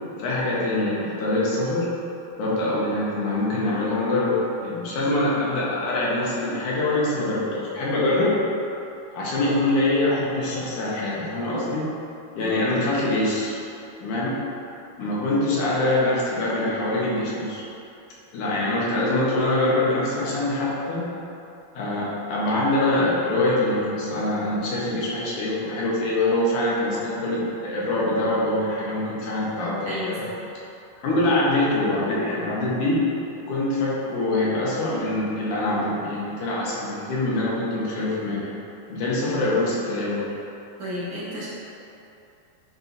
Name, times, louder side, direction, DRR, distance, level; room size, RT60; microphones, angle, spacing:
voice 1, 0.2-1.9 2.4-8.3 9.1-11.9 12.4-13.6 14.0-14.3 15.0-17.6 18.3-21.1 21.7-30.2 31.0-33.0 33.5-38.5 38.9-40.3, left 2 dB, 75° left, -7 dB, 2.6 m, -24 dB
voice 2, 29.9-30.4 40.8-41.5, equal, 45° right, -10 dB, 1.8 m, -32 dB
10.0 x 4.4 x 2.8 m, 2.8 s
omnidirectional pair, 3.7 m